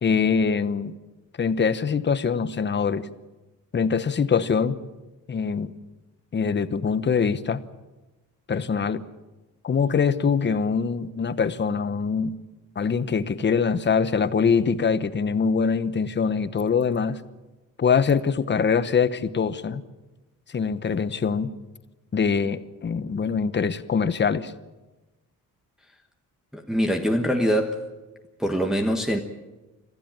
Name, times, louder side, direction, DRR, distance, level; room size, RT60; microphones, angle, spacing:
voice 1, 0.0-0.9 1.4-3.1 3.7-4.8 5.3-5.7 6.3-7.6 8.5-9.0 9.6-12.4 12.8-17.2 17.8-19.8 20.5-21.5 22.1-24.5, left 6 dB, 35° left, 13 dB, 1.0 m, -23 dB
voice 2, 26.5-27.8 28.4-29.2, equal, ahead, 2 dB, 1.3 m, -23 dB
26.0 x 15.0 x 8.9 m, 1.1 s
cardioid pair, 135°, 34 cm